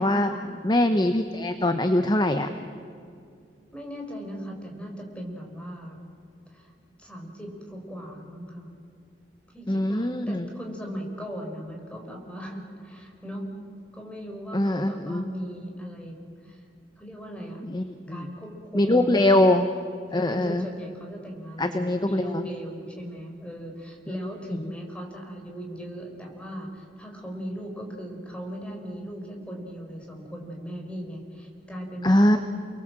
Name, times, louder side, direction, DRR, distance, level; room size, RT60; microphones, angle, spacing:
voice 1, 0.0-0.3 0.6-2.5 9.7-10.5 14.5-15.2 17.6-18.3 18.7-19.7 20.1-20.7 21.6-22.5 32.0-32.4, left 1 dB, 25° left, 8 dB, 1.1 m, -22 dB
voice 2, 3.7-6.0 6.5-6.7 7.0-8.7 9.5-13.5 13.9-16.2 16.4-16.6 17.0-17.6 18.1-19.4 20.1-32.4, equal, 5° left, 1 dB, 5.2 m, -38 dB
29.5 x 23.0 x 7.6 m, 2.4 s
head